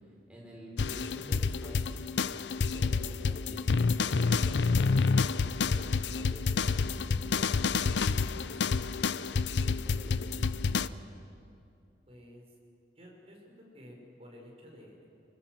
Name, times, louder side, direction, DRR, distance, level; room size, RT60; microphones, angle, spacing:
voice 1, 0.3-2.1 2.4-10.9, equal, 5° right, -3 dB, 5.4 m, -48 dB
sound 1, 0.8-10.9, left 4 dB, 75° left, 0.5 m, -29 dB
voice 2, 12.1-12.5 13.0-15.1, equal, 35° right, -1 dB, 5.5 m, -52 dB
24.0 x 21.0 x 7.9 m, 2.5 s
head